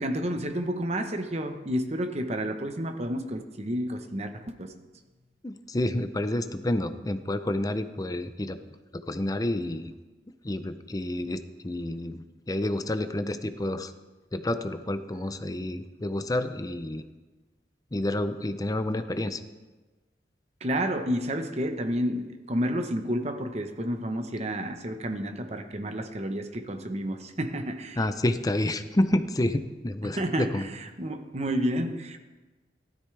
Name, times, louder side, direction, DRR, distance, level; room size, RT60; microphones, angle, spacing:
voice 1, 0.0-4.7 15.2-15.3 20.6-28.0 30.0-32.2, equal, 35° right, 6 dB, 1.0 m, -30 dB
voice 2, 5.4-8.6 8.9-9.9 10.4-13.9 14.3-17.0 17.9-19.4 28.0-30.6, left 1 dB, 20° left, 10 dB, 0.6 m, -29 dB
15.5 x 13.0 x 3.3 m, 1.2 s
head